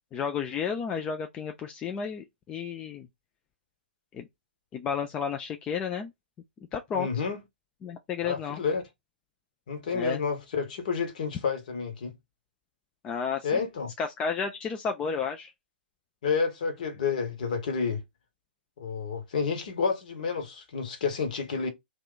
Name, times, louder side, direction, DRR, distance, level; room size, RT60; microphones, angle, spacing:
voice 1, 0.1-3.1 4.1-4.3 4.7-6.1 6.7-7.1 7.8-8.6 9.9-10.2 13.0-13.6 14.0-15.5, left 6 dB, 15° left, 0.4 m, -32 dB
voice 2, 6.9-7.4 8.2-8.8 9.7-12.1 13.4-13.9 16.2-18.0 18.8-21.7, left 5 dB, 50° left, 1.1 m, -30 dB
2.8 x 2.4 x 3.8 m
figure-of-eight pair, 120°, 6 cm